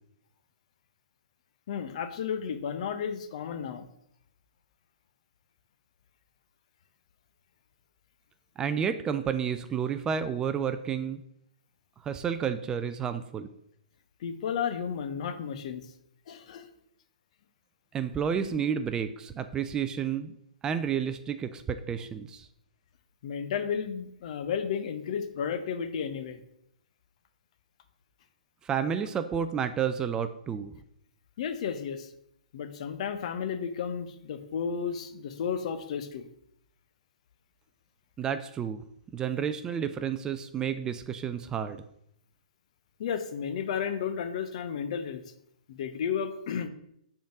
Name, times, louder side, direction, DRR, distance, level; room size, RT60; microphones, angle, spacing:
voice 1, 1.7-3.9 14.2-15.9 16.3-16.7 23.2-26.4 31.4-32.1 32.5-36.3 43.0-45.2 45.7-46.7, left 7 dB, 50° left, 9 dB, 0.7 m, -33 dB
voice 2, 8.6-11.2 12.0-13.5 17.9-20.3 20.6-22.5 28.6-30.7 38.2-38.8 39.1-41.8, right 7 dB, 15° right, 9 dB, 0.3 m, -30 dB
5.1 x 3.8 x 5.8 m, 0.74 s
figure-of-eight pair, 120°, 4 cm